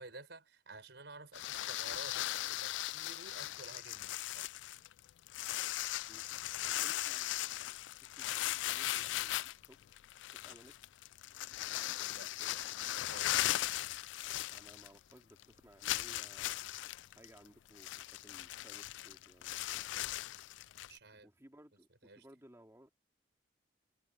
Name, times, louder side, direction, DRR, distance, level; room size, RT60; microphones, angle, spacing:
voice 1, 0.0-4.5 12.1-13.3 20.9-21.3 22.0-22.3, right 3 dB, 70° right, 5.9 m, -53 dB
sound 1, 1.3-15.1 15.4-15.5 15.8-21.0, left 14 dB, 80° left, 0.3 m, -38 dB
voice 2, 6.6-9.8 10.3-10.8 14.5-16.6 17.1-19.5 21.1-22.9, equal, 15° right, 3.8 m, -60 dB
head